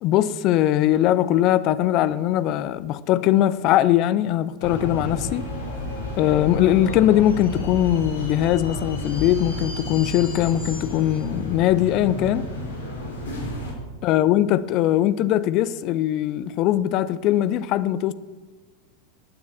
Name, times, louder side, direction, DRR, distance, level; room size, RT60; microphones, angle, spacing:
voice 1, 0.0-5.5 6.2-12.4 14.0-18.1, left 12 dB, 40° left, 0.6 m, -21 dB
sound 1, 4.6-13.7, left 1 dB, 65° left, 4.4 m, -31 dB
13.5 x 9.5 x 8.4 m
figure-of-eight pair, 90°, 0 cm